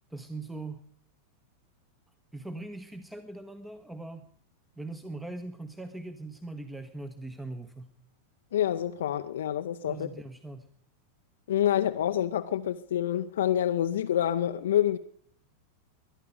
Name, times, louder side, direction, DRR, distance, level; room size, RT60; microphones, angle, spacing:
voice 1, 0.1-0.8 2.3-4.3 4.8-7.9 9.9-10.7, right 2 dB, 5° right, 1.0 m, -41 dB
voice 2, 8.5-10.1 11.5-15.0, left 11 dB, 60° left, 0.6 m, -27 dB
21.5 x 11.0 x 5.2 m
figure-of-eight pair, 90°, 0 cm